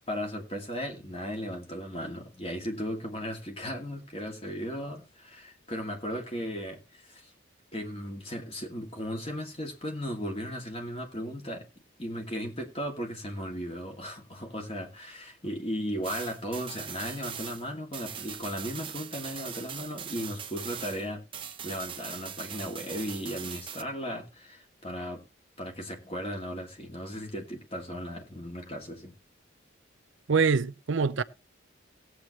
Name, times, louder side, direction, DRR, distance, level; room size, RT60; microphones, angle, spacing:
voice 1, 0.0-7.3 7.7-11.7 12.0-21.2 21.6-25.2 25.6-29.1, equal, 30° left, 2.4 m, -36 dB
sound 1, 16.0-21.1 21.3-23.8, right 8 dB, 25° right, 0.7 m, -41 dB
voice 2, 30.3-31.2, right 5 dB, 70° right, 0.6 m, -24 dB
18.0 x 8.2 x 3.1 m
head